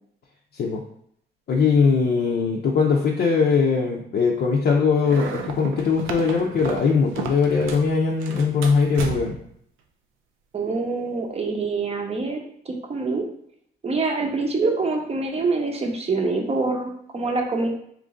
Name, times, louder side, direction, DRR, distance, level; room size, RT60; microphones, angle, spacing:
voice 1, 1.5-9.4, left 5 dB, 55° left, -2 dB, 0.5 m, -20 dB
sound 1, 5.0-7.9 8.2-9.5, right 5 dB, 85° right, 0.5 m, -34 dB
voice 2, 10.5-12.4 12.7-13.2 13.8-17.7, right 3 dB, 30° right, 2 dB, 0.7 m, -25 dB
3.0 x 2.5 x 3.7 m, 0.68 s
cardioid pair, 90°, 20 cm